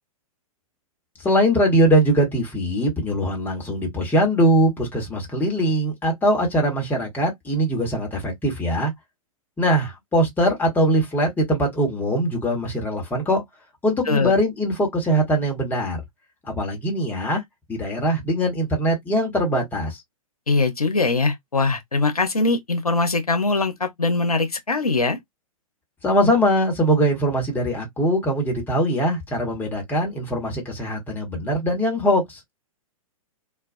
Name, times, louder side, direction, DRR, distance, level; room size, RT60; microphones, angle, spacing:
voice 1, 1.2-8.9 9.6-13.4 13.8-16.0 16.5-17.4 17.7-20.0 26.0-32.5, equal, 10° left, 1.0 m, -21 dB
voice 2, 20.5-25.2, left 3 dB, 90° left, 0.6 m, -22 dB
2.3 x 2.2 x 2.5 m
figure-of-eight pair, 110°, 18 cm